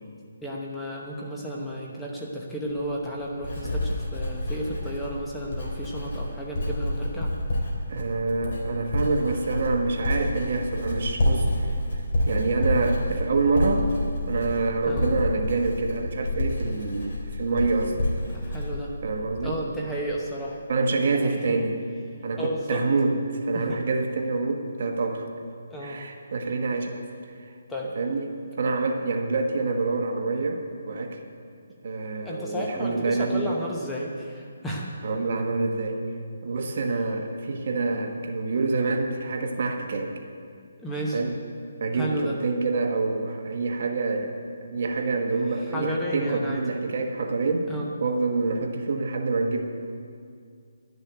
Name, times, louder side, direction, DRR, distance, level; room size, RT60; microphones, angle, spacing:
voice 1, 0.4-7.3 14.9-15.1 18.3-18.9 19.4-20.6 21.2-21.6 22.4-22.8 23.5-23.8 25.7-26.0 27.7-27.9 32.2-34.9 40.8-41.2 41.9-42.4 45.7-46.6 47.7-47.9, equal, 5° left, -3 dB, 0.9 m, -32 dB
Writing, 2.7-19.7 20.0-20.5, left 1 dB, 45° left, 3.0 m, -29 dB
voice 2, 7.9-13.9 14.3-18.1 19.0-19.6 20.7-21.8 22.2-23.2 23.4-25.3 25.8-27.5 27.9-31.2 31.8-33.5 35.0-36.0 36.4-40.1 41.1-41.3 41.8-44.3 44.6-47.7 48.0-49.6, right 3 dB, 50° right, 3 dB, 1.3 m, -27 dB
11.5 x 6.8 x 9.0 m, 2.3 s
hypercardioid pair, 170°, 0 cm